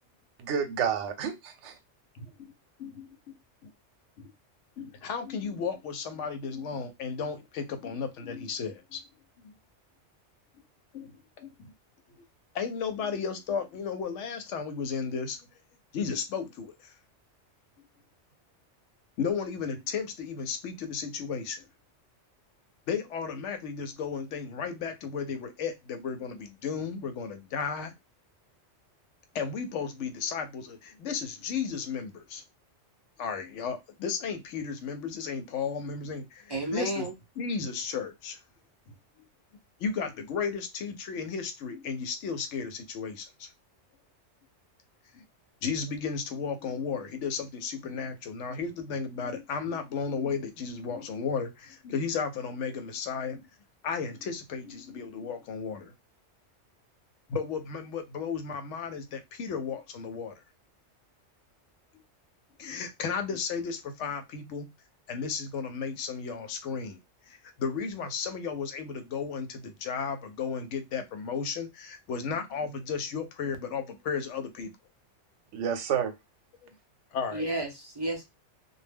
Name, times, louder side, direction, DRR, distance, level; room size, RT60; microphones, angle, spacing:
voice 1, 0.4-1.8 75.5-76.1, right 7 dB, 85° right, 0.9 m, -29 dB
voice 2, 2.1-2.5 2.8-3.4 3.6-3.7 4.2-4.3 4.8-9.0 9.4-9.5 10.9-11.7 12.5-15.4 15.9-16.9 19.2-21.7 22.9-27.9 29.3-32.4 33.2-37.0 37.4-38.4 38.9-39.0 39.8-43.5 45.1-45.2 45.6-53.5 53.8-55.9 57.3-60.3 62.6-64.7 65.1-67.0 67.3-74.7 76.6-76.7 77.1-77.4, left 6 dB, 85° left, 0.9 m, -34 dB
voice 3, 36.5-37.2 77.3-78.2, right 2 dB, 35° right, 0.4 m, -32 dB
2.2 x 2.1 x 3.3 m
omnidirectional pair, 1.2 m